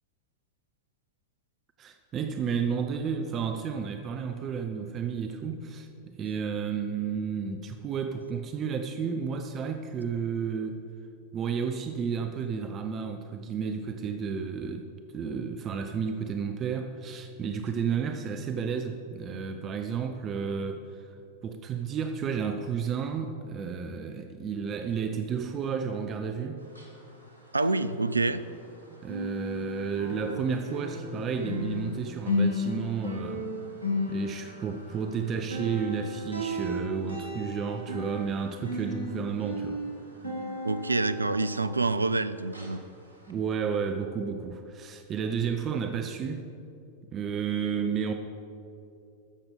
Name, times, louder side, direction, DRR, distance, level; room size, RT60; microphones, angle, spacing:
voice 1, 1.8-10.8 11.3-21.1 21.4-26.6 29.0-33.5 34.1-39.8 43.3-46.5 47.1-48.1, right 6 dB, 30° right, 6 dB, 0.7 m, -32 dB
sound 1, 26.6-28.8 29.0-42.2 42.5-42.8 43.2-43.3, left 2 dB, 85° left, 1.8 m, -35 dB
voice 2, 27.5-28.4 40.6-42.8, right 3 dB, 80° right, 13 dB, 0.4 m, -27 dB
14.0 x 6.8 x 5.6 m, 2.6 s
figure-of-eight pair, 90°, 0 cm